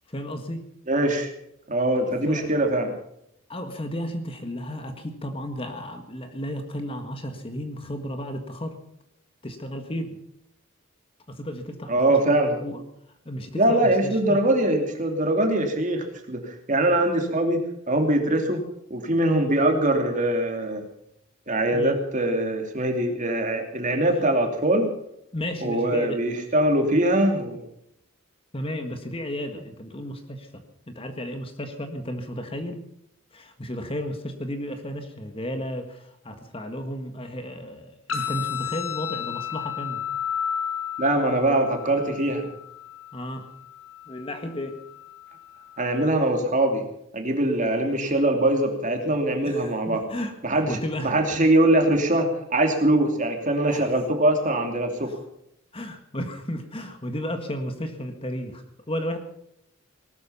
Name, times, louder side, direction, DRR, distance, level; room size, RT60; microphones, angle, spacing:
voice 1, 0.1-0.7 2.0-2.7 3.5-8.8 9.4-10.2 11.3-12.8 13.2-14.4 21.7-22.0 24.1-24.2 25.3-26.2 28.5-30.5 30.9-32.9 33.3-40.0 43.1-43.5 44.1-44.8 49.4-50.3 50.7-51.3 53.7-54.0 55.0-55.2 55.7-59.2, equal, 30° left, 6 dB, 1.7 m, -33 dB
voice 2, 0.9-1.3 1.7-2.9 11.9-12.6 13.5-18.6 18.9-20.8 21.5-24.9 25.6-27.6 41.0-42.5 45.8-46.8 47.1-50.0 50.4-50.8 51.0-55.2, right 1 dB, 40° right, 4 dB, 2.7 m, -22 dB
sound 1, 38.1-46.1, left 9 dB, 80° left, 4.8 m, -33 dB
19.0 x 13.0 x 5.6 m, 0.76 s
head